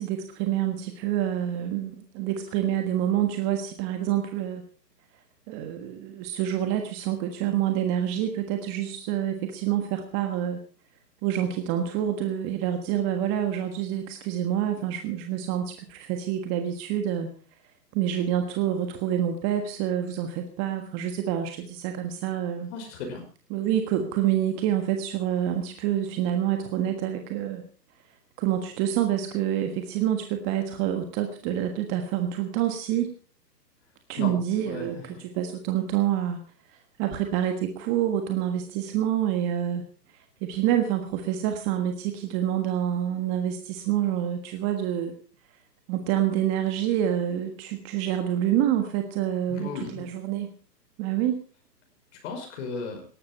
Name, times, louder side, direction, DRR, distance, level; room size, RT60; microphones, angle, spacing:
voice 1, 0.0-4.6 5.5-10.6 11.2-17.3 17.9-22.7 23.5-27.6 28.4-33.1 34.1-36.4 36.7-39.8 40.4-45.1 45.9-50.5 51.0-51.4, right 11 dB, 25° right, 5 dB, 1.5 m, -27 dB
voice 2, 22.6-23.2 34.2-35.2 49.5-50.1 52.2-53.1, left 4 dB, 45° left, 3 dB, 5.5 m, -36 dB
18.5 x 12.5 x 4.4 m, 0.39 s
hypercardioid pair, 140°, 50 cm